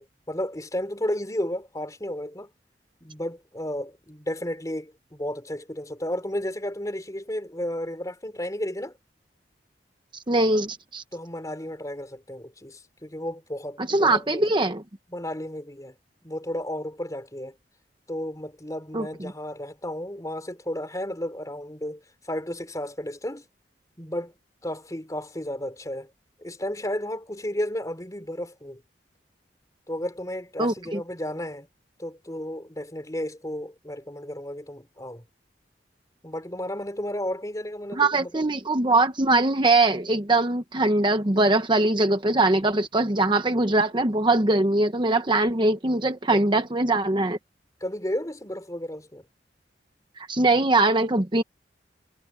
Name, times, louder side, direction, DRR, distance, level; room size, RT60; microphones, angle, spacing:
voice 1, 0.0-2.5 3.0-8.9 11.1-14.6 15.1-15.9 16.2-17.5 18.1-22.0 22.3-23.4 24.0-24.3 24.6-26.1 26.4-28.8 29.9-31.7 32.0-35.2 36.2-38.4 46.3-46.4 47.8-49.2, left 1 dB, 20° left, 3.9 m, -33 dB
voice 2, 10.3-11.0 13.9-14.8 18.9-19.1 30.6-31.0 37.9-47.4 50.2-51.4, right 2 dB, 25° right, 1.0 m, -22 dB
head